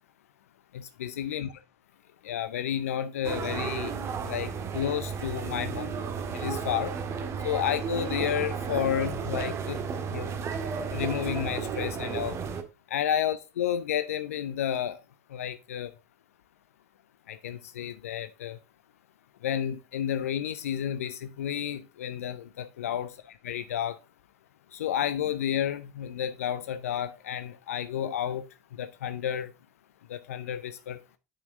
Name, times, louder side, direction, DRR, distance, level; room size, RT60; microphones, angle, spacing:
voice 1, 0.7-1.5 2.2-5.9 6.3-7.0 7.4-10.3 10.9-12.4 12.9-15.0 15.3-15.9 17.3-18.6 19.4-24.0 24.7-28.5 28.7-29.5 30.1-31.0, left 10 dB, 75° left, 0.6 m, -31 dB
sound 1, 3.2-12.6, right 6 dB, 35° right, 1.6 m, -33 dB
9.6 x 5.9 x 3.6 m
hypercardioid pair, 80°, 8 cm